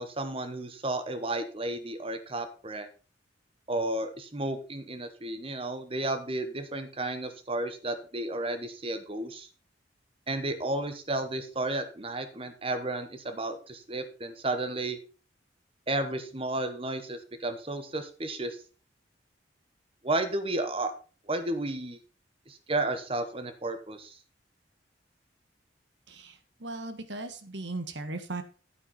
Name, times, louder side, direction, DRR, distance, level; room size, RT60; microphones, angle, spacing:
voice 1, 0.0-2.9 3.7-9.5 10.3-15.0 15.9-18.6 20.0-20.9 21.3-22.0 22.5-24.2, right 2 dB, 30° right, 9 dB, 1.0 m, -32 dB
voice 2, 26.6-28.4, right 2 dB, 70° right, 10 dB, 1.4 m, -37 dB
9.5 x 8.9 x 4.1 m, 0.35 s
head